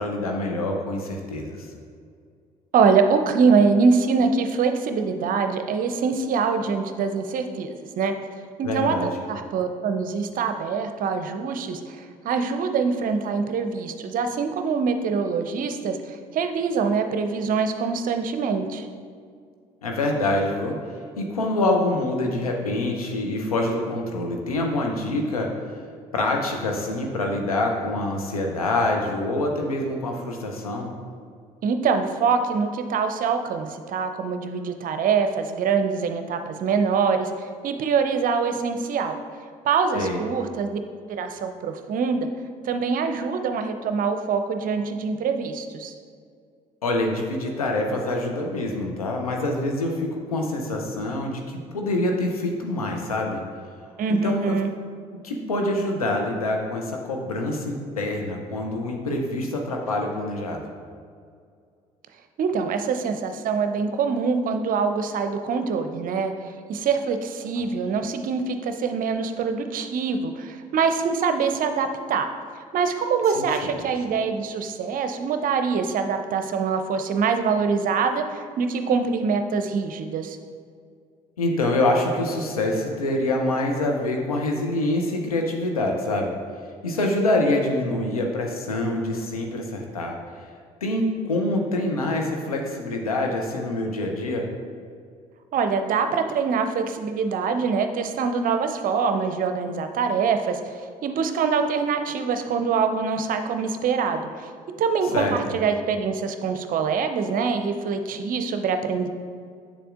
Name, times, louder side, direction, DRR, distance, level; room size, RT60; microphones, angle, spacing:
voice 1, 0.0-1.7 8.6-9.1 19.8-20.8 21.2-25.5 26.1-30.9 39.9-40.2 46.8-53.4 54.1-54.6 55.1-60.6 73.4-73.6 81.4-86.4 86.8-90.2 90.8-94.5 105.1-105.4, left 1 dB, 90° left, 2 dB, 0.6 m, -25 dB
voice 2, 2.7-8.1 8.6-12.0 12.2-16.0 16.3-18.9 31.6-39.2 39.6-40.8 41.1-42.3 42.6-45.9 54.0-54.7 62.4-66.3 66.7-72.3 72.7-80.4 95.5-100.6 101.0-104.5 104.8-109.1, right 5 dB, 50° right, 7 dB, 0.6 m, -24 dB
7.3 x 6.8 x 2.5 m, 2.2 s
hypercardioid pair, 50°, 18 cm